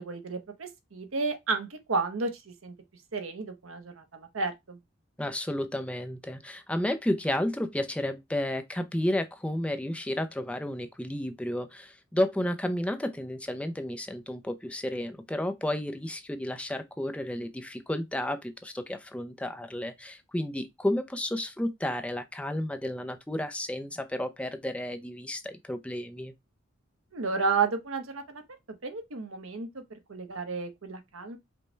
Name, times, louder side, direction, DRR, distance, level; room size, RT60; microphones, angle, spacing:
voice 1, 0.0-2.7 3.1-4.8 27.1-28.4 28.8-29.8 30.1-31.4, right 4 dB, 80° right, 0.8 m, -32 dB
voice 2, 5.2-26.3, left 1 dB, 5° left, 0.4 m, -32 dB
5.2 x 2.2 x 4.3 m
head